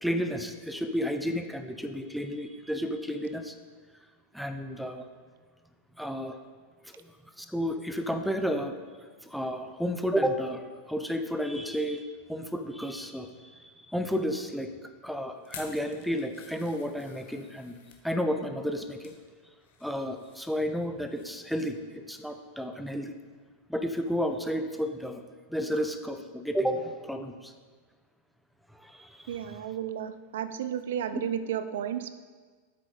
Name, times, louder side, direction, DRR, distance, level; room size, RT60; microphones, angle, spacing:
voice 1, 0.0-3.5 4.3-5.1 6.0-6.4 6.9-8.8 9.2-10.6 10.9-14.7 15.0-17.7 18.0-19.1 19.8-23.2 23.7-25.2 25.5-27.5 28.7-29.7 31.1-31.2, equal, ahead, 6 dB, 0.8 m, -32 dB
sound 1, 15.4-18.0 18.6-19.2 19.6-21.3 21.6-21.8 22.2-22.3, left 7 dB, 55° left, 1.3 m, -51 dB
voice 2, 29.3-32.1, right 9 dB, 60° right, 12 dB, 0.4 m, -33 dB
9.6 x 8.4 x 4.0 m, 1.5 s
figure-of-eight pair, 90°, 0 cm